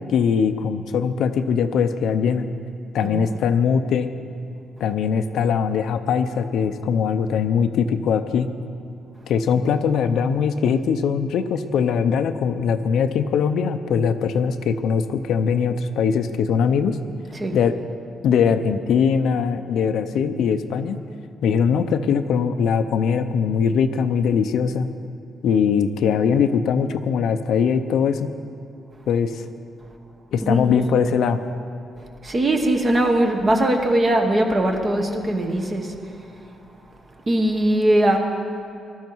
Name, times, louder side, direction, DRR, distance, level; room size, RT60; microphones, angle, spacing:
voice 1, 0.0-2.4 2.9-4.1 4.8-8.5 9.3-17.0 17.5-17.8 18.2-21.0 21.4-24.9 25.4-28.3 29.1-29.5 30.3-31.4, left 6 dB, 75° left, 9 dB, 0.6 m, -21 dB
voice 2, 30.4-30.7 32.2-35.9 37.3-38.2, right 1 dB, 25° right, 3 dB, 1.0 m, -20 dB
20.0 x 12.0 x 4.6 m, 2.5 s
cardioid pair, 165°, 0 cm